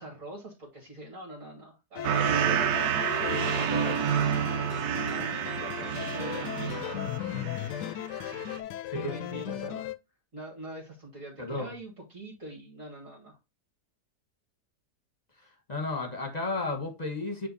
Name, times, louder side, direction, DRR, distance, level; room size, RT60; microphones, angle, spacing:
voice 1, 0.0-8.4 9.0-9.9 10.3-13.4, right 1 dB, 50° right, 2.4 m, -44 dB
sound 1, 2.0-10.0, left 12 dB, 90° left, 1.2 m, -36 dB
sound 2, 2.0-7.8 8.1-8.6, right 8 dB, 75° right, 1.3 m, -29 dB
voice 2, 8.9-9.6 11.4-11.7 15.7-17.5, left 2 dB, 25° left, 1.3 m, -33 dB
8.5 x 3.0 x 4.0 m
omnidirectional pair, 1.7 m